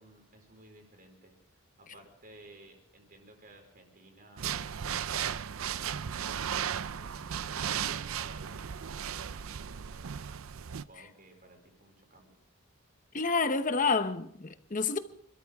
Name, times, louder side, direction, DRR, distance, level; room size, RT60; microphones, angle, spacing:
voice 1, 0.0-10.2 10.9-12.4, right 1 dB, 40° right, 4.7 m, -57 dB
sound 1, 4.4-10.8, right 8 dB, 75° right, 0.5 m, -35 dB
voice 2, 13.1-15.0, left 4 dB, 35° left, 0.9 m, -29 dB
26.0 x 13.0 x 3.5 m
head